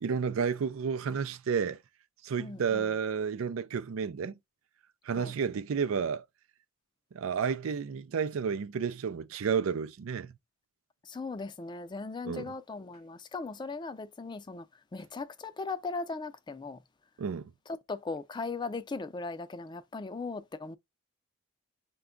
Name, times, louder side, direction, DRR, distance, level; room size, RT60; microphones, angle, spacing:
voice 1, 0.0-1.8 2.2-4.3 5.0-6.2 7.1-10.4 12.3-12.5 17.2-17.5, right 6 dB, 90° right, 0.4 m, -31 dB
voice 2, 2.4-2.9 5.1-5.3 11.0-14.7 14.9-16.8 17.7-20.8, left 3 dB, 20° left, 0.3 m, -38 dB
5.8 x 2.3 x 3.7 m
head